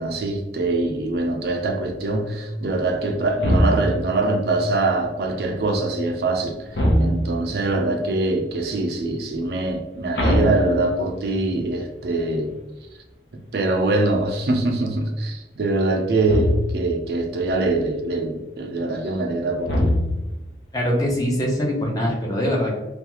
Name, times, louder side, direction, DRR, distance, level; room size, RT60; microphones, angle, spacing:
voice 1, 0.0-6.7 7.0-12.5 13.3-19.9, right 2 dB, 60° right, 0.4 m, -23 dB
sound 1, 3.4-4.2 6.7-7.5 10.2-11.3 16.3-16.9 19.7-20.5, equal, 75° left, 0.6 m, -21 dB
voice 2, 20.7-22.7, equal, 20° left, 0.6 m, -22 dB
2.3 x 2.3 x 2.9 m
head